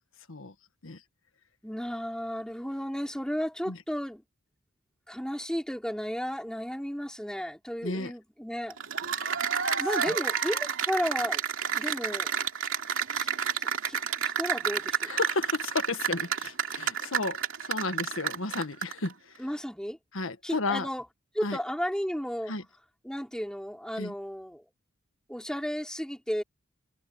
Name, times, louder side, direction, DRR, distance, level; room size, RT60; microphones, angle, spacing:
voice 1, 1.6-4.2 5.1-8.8 9.7-11.4 11.7-12.3 13.1-15.1 19.4-20.0 20.4-21.0 21.3-22.5 23.0-24.6 25.3-26.4, equal, 5° left, 4.3 m, -33 dB
voice 2, 7.8-8.1 10.1-10.2 15.1-19.4 20.1-20.9 21.4-21.6 22.5-22.6 24.0-24.1, left 3 dB, 70° left, 1.6 m, -33 dB
Cheering / Applause, 8.7-19.1, right 7 dB, 65° right, 3.0 m, -30 dB
head